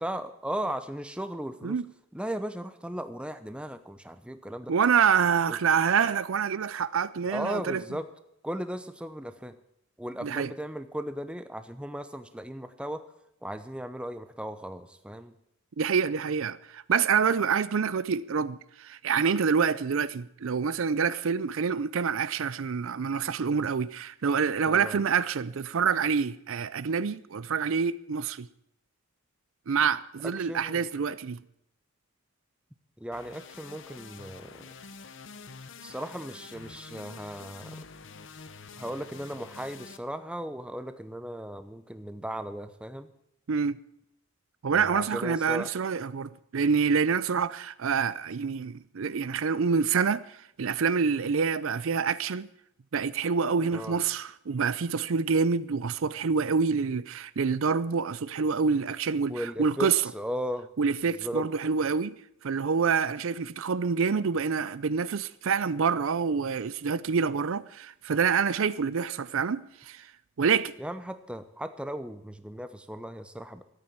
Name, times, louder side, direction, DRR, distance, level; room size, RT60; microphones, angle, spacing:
voice 1, 0.0-1.8 2.1-4.7 7.3-8.1 8.4-9.6 10.0-13.0 13.4-15.3 24.6-25.0 30.4-30.8 33.0-34.7 35.8-37.8 38.8-43.1 44.7-45.7 53.7-54.0 59.3-60.7 61.2-61.5 70.8-73.6, equal, 5° right, 0.7 m, -36 dB
voice 2, 4.7-7.8 10.2-10.5 15.8-28.5 29.7-31.4 43.5-43.8 44.6-52.5 52.9-60.0 60.8-62.2 62.4-70.1 70.4-70.7, right 6 dB, 60° right, 0.5 m, -27 dB
sound 1, 33.1-40.0, left 4 dB, 55° left, 0.9 m, -47 dB
13.5 x 8.7 x 8.9 m
head